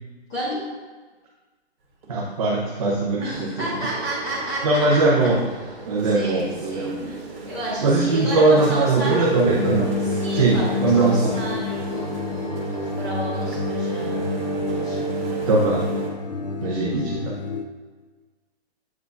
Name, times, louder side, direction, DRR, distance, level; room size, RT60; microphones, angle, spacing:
voice 1, 0.3-0.6 3.2-5.0 6.0-6.9 7.4-9.2 10.0-14.2 14.7-15.4 16.6-17.1, right 1 dB, 20° left, -10 dB, 1.5 m, -32 dB
sound 1, 2.0-2.1 3.0-3.1 3.3-16.1, right 6 dB, 60° right, 1.5 m, -33 dB
voice 2, 2.1-3.7 4.6-5.4 5.9-7.2 7.8-9.9 10.3-11.3 15.5-15.9 16.6-17.3, right 3 dB, 30° right, -4 dB, 0.7 m, -20 dB
sound 2, 9.4-17.6, left 4 dB, 40° left, 0.4 m, -28 dB
8.1 x 4.6 x 2.5 m, 1.3 s
hypercardioid pair, 165°, 33 cm